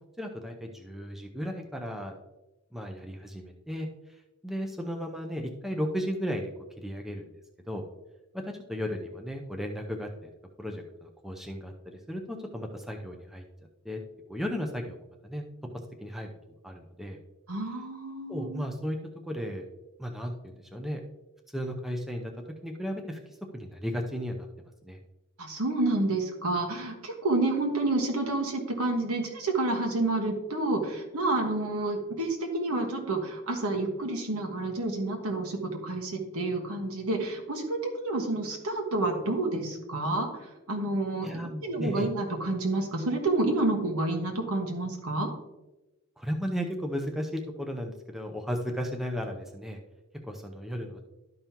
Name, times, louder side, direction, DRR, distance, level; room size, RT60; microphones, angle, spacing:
voice 1, 0.2-2.1 2.7-3.9 4.4-6.5 6.8-7.2 7.7-7.8 8.3-10.3 10.6-13.4 13.8-14.0 14.3-15.0 15.2-15.4 16.0-16.3 16.6-17.2 18.3-19.0 19.3-19.6 20.0-21.0 21.5-22.3 22.6-23.2 23.5-24.5 24.8-25.0 41.2-42.1 46.2-49.8 50.2-51.0, equal, ahead, 2 dB, 0.6 m, -34 dB
voice 2, 17.5-18.6 25.4-40.3 40.7-45.3, right 2 dB, 80° right, 1 dB, 1.5 m, -29 dB
12.0 x 5.4 x 2.9 m, 1.0 s
head